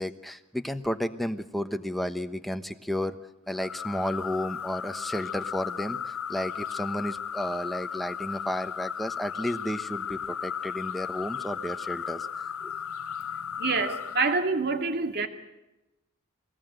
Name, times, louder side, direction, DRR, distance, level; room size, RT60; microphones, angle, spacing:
voice 1, 0.0-3.2 3.5-12.3 12.6-12.7, equal, ahead, 8 dB, 1.1 m, -32 dB
sound 1, 3.6-14.4, left 7 dB, 80° left, 0.9 m, -35 dB
voice 2, 13.6-15.3, right 4 dB, 50° right, 6 dB, 2.4 m, -26 dB
23.5 x 18.5 x 8.1 m, 0.98 s
head